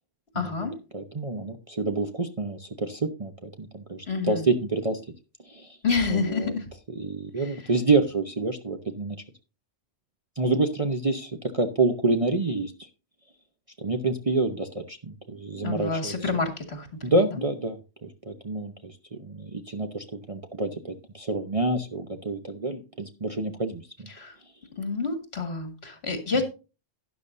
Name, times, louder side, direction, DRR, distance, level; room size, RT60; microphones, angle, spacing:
voice 1, 0.3-0.8 4.1-4.5 5.8-6.7 7.3-7.7 15.6-17.4 24.1-24.4 24.8-26.5, left 4 dB, 55° left, 6 dB, 2.3 m, -29 dB
voice 2, 0.9-5.0 5.4-5.8 6.1-6.5 7.0-9.2 10.4-12.7 13.8-16.1 17.0-24.1, right 3 dB, 30° right, 6 dB, 0.8 m, -28 dB
12.0 x 10.0 x 2.7 m, 0.31 s
omnidirectional pair, 1.3 m